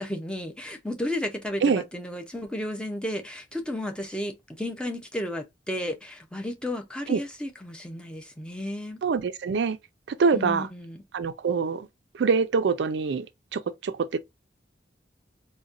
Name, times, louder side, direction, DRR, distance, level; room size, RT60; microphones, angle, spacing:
voice 1, 0.0-9.0 10.3-11.0, left 1 dB, 5° left, 0.5 m, -33 dB
voice 2, 9.0-9.8 10.1-10.7 11.1-11.9 12.1-13.3 13.5-14.2, right 5 dB, 85° right, 0.4 m, -24 dB
3.9 x 2.2 x 2.4 m
head